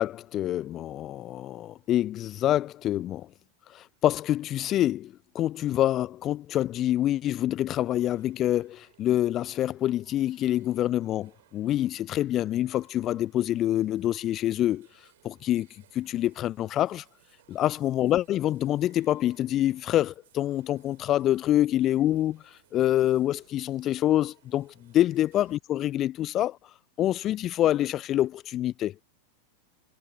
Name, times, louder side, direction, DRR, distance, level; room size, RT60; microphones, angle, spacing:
voice 1, 0.0-3.3 3.7-15.7 15.9-17.0 17.5-26.6 27.0-29.0, left 13 dB, 30° left, 0.3 m, -26 dB
sound 1, 7.9-25.6, right 14 dB, 55° right, 7.2 m, -63 dB
figure-of-eight pair, 90°, 0 cm